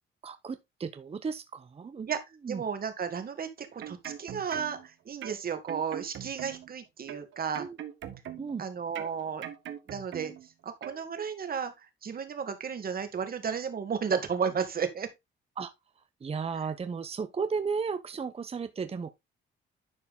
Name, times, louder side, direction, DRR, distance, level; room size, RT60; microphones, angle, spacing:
voice 1, 0.2-2.1 2.4-2.6 7.6-7.8 8.4-8.6 15.6-15.7 16.0-19.1, right 5 dB, 30° right, 0.8 m, -34 dB
voice 2, 2.5-7.7 8.6-9.4 9.9-15.1, right 6 dB, 50° right, 2.1 m, -33 dB
sound 1, 3.6-4.9 5.2-6.7 7.1-8.6 8.9-10.5 10.8-11.0, right 10 dB, 75° right, 1.4 m, -42 dB
11.0 x 4.7 x 3.7 m
cardioid pair, 90°, 20 cm